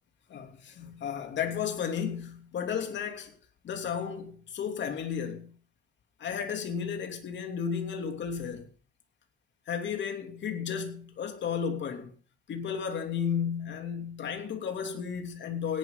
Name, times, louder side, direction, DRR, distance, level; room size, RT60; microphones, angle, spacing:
voice 1, 0.3-3.3 3.6-5.6 6.2-8.7 9.7-12.1 12.5-15.8, left 7 dB, 65° left, 3.0 m, -33 dB
17.5 x 11.0 x 4.0 m
cardioid pair, 90°, 20 cm